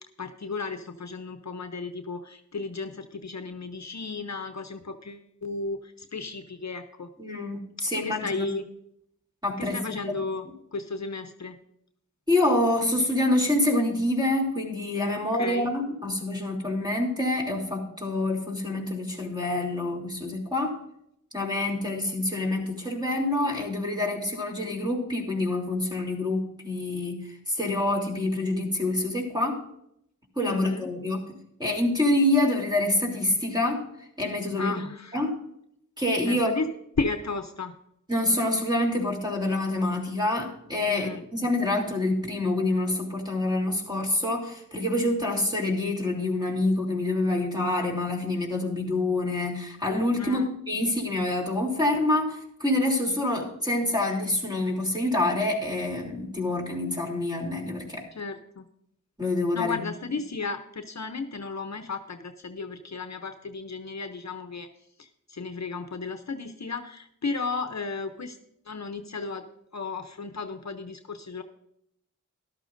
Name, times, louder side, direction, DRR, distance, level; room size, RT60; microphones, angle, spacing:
voice 1, 0.2-7.1 7.9-8.6 9.6-10.4 10.7-11.6 15.1-15.7 30.4-30.9 34.6-35.2 36.3-36.7 37.0-37.7 40.8-41.2 50.2-50.5 58.2-58.7 59.5-64.7 65.0-68.4 68.7-69.5 69.7-71.4, left 4 dB, 55° left, 7 dB, 0.7 m, -34 dB
voice 2, 7.2-8.5 9.4-10.2 12.3-20.7 21.3-29.6 30.3-31.2 31.6-33.8 34.2-34.8 35.1-35.4 36.0-36.5 38.1-58.0 59.2-59.8, left 2 dB, 15° right, -1 dB, 3.1 m, -26 dB
13.5 x 12.0 x 2.6 m, 0.75 s
wide cardioid pair, 50°, 32 cm